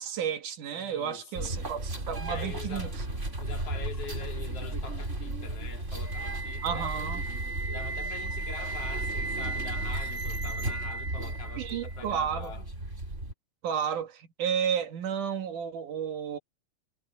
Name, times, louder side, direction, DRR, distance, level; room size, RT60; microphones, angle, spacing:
voice 1, 0.0-2.9 6.6-7.2 11.6-12.5 13.6-16.4, right 8 dB, 75° right, 3.3 m, -32 dB
voice 2, 0.8-1.7 2.3-2.9 3.4-6.9 7.7-12.6, left 6 dB, 50° left, 3.5 m, -44 dB
sound 1, 1.3-13.3, right 1 dB, 20° right, 4.4 m, -35 dB
Wind instrument woodwind instrument, 6.0-12.0, right 3 dB, 15° left, 6.2 m, -37 dB
omnidirectional pair, 3.7 m